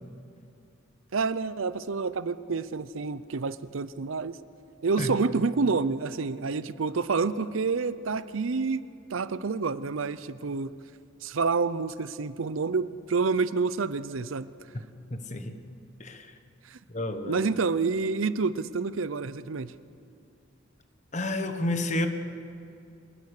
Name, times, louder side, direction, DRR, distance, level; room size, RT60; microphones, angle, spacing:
voice 1, 1.1-4.4 4.8-10.7 11.2-14.5 16.7-16.8 17.3-19.7, right 4 dB, 80° right, 15 dB, 0.6 m, -28 dB
voice 2, 15.1-15.6 16.0-16.4 16.9-17.4 21.1-22.1, left 1 dB, 35° left, 8 dB, 1.2 m, -30 dB
26.0 x 19.5 x 6.6 m, 2.6 s
head